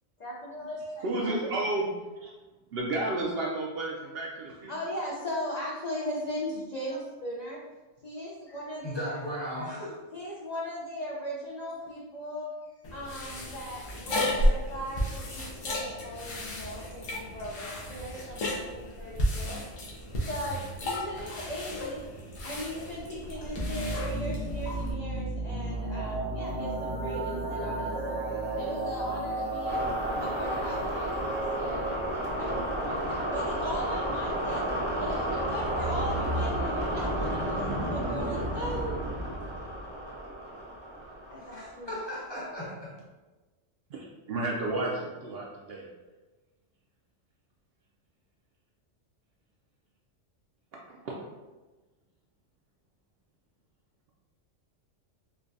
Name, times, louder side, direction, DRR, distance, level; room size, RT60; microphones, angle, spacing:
voice 1, 0.2-1.3 4.7-7.6 8.0-9.2 10.1-12.5 12.9-19.6 20.3-22.0 22.4-28.2 28.5-29.8 30.2-32.0 32.4-34.6 35.0-39.0 41.3-41.9, equal, 60° left, -4 dB, 0.4 m, -38 dB
voice 2, 1.0-1.9 2.2-2.3 2.7-4.7 43.9-45.9 51.0-51.1, right 2 dB, 65° right, -2 dB, 0.7 m, -31 dB
voice 3, 8.8-10.0 41.5-42.9, equal, 25° left, -6 dB, 0.8 m, -36 dB
sound 1, 12.8-24.9, equal, 85° left, 1.2 m, -33 dB
sound 2, 23.6-42.0, right 1 dB, 10° right, 0.6 m, -32 dB
4.4 x 2.2 x 2.6 m, 1.2 s
omnidirectional pair, 1.3 m